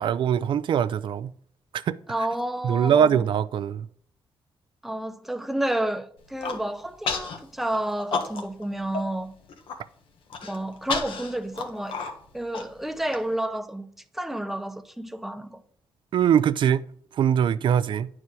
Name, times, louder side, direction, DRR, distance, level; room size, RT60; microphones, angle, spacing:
voice 1, 0.0-1.3 1.7-2.0 2.6-3.9 16.1-16.8 17.1-18.1, right 8 dB, 65° right, 0.4 m, -22 dB
voice 2, 2.1-3.3 4.8-9.3 10.4-12.0 12.3-13.9 14.1-15.6, right 1 dB, 5° right, 0.7 m, -30 dB
Human voice, 6.2-6.6 7.1-7.4 7.7-8.6 8.9-9.0 9.4-9.8 10.3-13.2, left 5 dB, 85° left, 1.4 m, -31 dB
9.6 x 4.7 x 4.8 m
cardioid pair, 120°, 9 cm